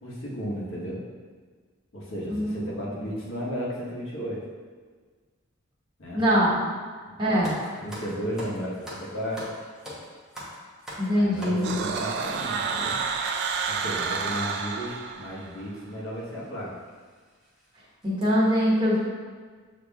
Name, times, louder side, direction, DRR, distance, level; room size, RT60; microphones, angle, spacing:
voice 1, 0.0-1.0 1.9-4.4 6.0-6.4 7.1-7.4 7.8-9.5 11.1-13.0 13.7-16.8, equal, 75° left, -5 dB, 1.2 m, -34 dB
voice 2, 6.1-6.7 7.2-7.6 11.0-11.7 18.0-19.0, equal, 25° right, -7 dB, 1.2 m, -23 dB
sound 1, 7.4-12.5 13.3-13.4 14.1-14.2 14.4-14.6 15.6-15.8 16.2-16.4 16.9-17.0 17.4-17.6 18.0-18.2, equal, 5° right, 0.8 m, -41 dB
sound 2, 11.6-15.6, right 5 dB, 55° right, 0.3 m, -29 dB
7.0 x 2.9 x 2.3 m, 1.5 s
head